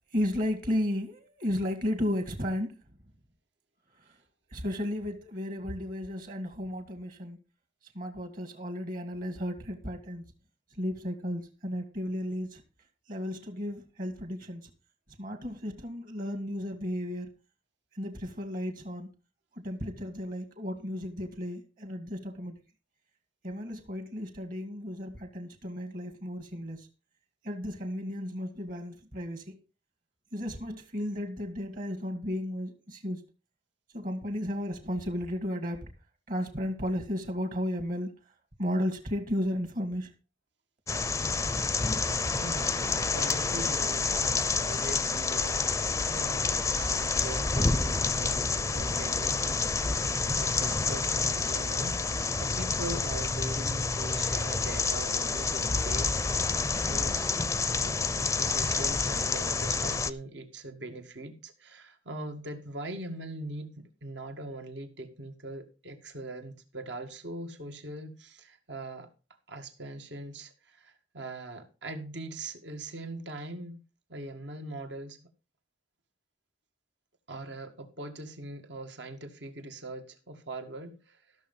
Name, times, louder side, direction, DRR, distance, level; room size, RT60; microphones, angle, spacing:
voice 1, 0.1-2.7 4.0-4.2 4.5-7.4 7.9-10.2 10.8-12.6 13.1-14.7 15.2-17.3 17.9-19.1 19.5-22.6 23.4-26.9 27.4-29.6 30.3-33.2 33.9-35.9 36.3-38.1 38.6-40.1, equal, 45° right, 2.1 m, -34 dB
sound 1, 40.9-60.1, left 4 dB, 15° left, 0.5 m, -28 dB
voice 2, 42.4-49.6 50.0-52.0 52.4-57.3 57.8-69.1 69.5-73.8 74.1-75.2 77.3-81.4, right 2 dB, 75° right, 2.0 m, -41 dB
14.0 x 6.7 x 5.4 m
head